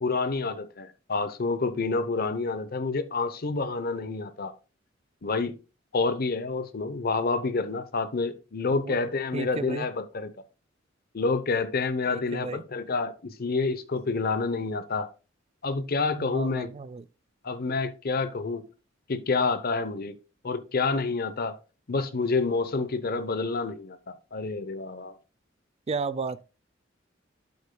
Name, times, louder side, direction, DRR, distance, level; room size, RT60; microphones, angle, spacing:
voice 1, 0.0-4.5 5.2-5.6 5.9-10.3 11.1-15.1 15.6-16.7 17.4-18.6 19.1-20.2 20.4-21.6 21.9-25.1, left 3 dB, 50° left, 0.8 m, -28 dB
voice 2, 8.7-9.0 9.3-9.9 12.1-12.6 16.1-17.1 25.9-26.4, right 4 dB, 30° right, 0.4 m, -33 dB
8.5 x 8.0 x 2.3 m
head